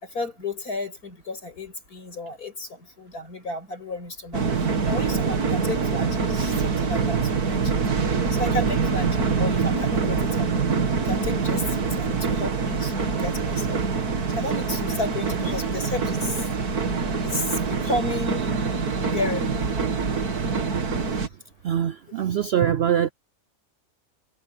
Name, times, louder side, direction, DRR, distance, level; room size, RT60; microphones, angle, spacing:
voice 1, 0.0-10.7 11.0-13.8 14.4-16.5 17.2-18.5 19.0-19.7, left 2 dB, 80° left, 6.5 m, -32 dB
sound 1, 4.3-21.3, right 5 dB, 90° right, 2.6 m, -25 dB
voice 2, 21.6-23.1, right 9 dB, 70° right, 0.6 m, -23 dB
omnidirectional pair, 1.6 m